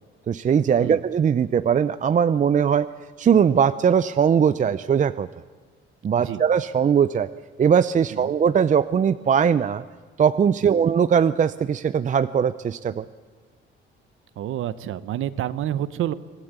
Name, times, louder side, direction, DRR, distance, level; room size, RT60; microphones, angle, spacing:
voice 1, 0.3-2.9 3.2-5.3 6.0-7.3 7.6-9.8 10.2-13.1, right 7 dB, 35° right, 14 dB, 0.6 m, -20 dB
voice 2, 10.6-10.9 14.4-16.1, right 11 dB, 75° right, 15 dB, 1.0 m, -29 dB
25.5 x 16.0 x 8.2 m, 1.5 s
cardioid pair, 105°, 21 cm